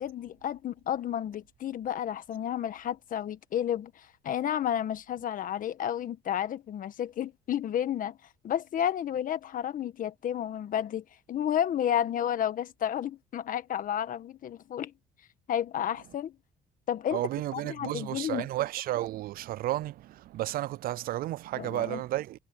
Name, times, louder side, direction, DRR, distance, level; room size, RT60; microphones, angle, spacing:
voice 1, 0.0-8.2 8.4-14.9 15.5-16.4 16.9-18.5 21.5-22.0, left 10 dB, 55° left, 1.5 m, -31 dB
voice 2, 17.1-22.4, right 15 dB, 60° right, 0.4 m, -32 dB
cardioid pair, 110°, 17 cm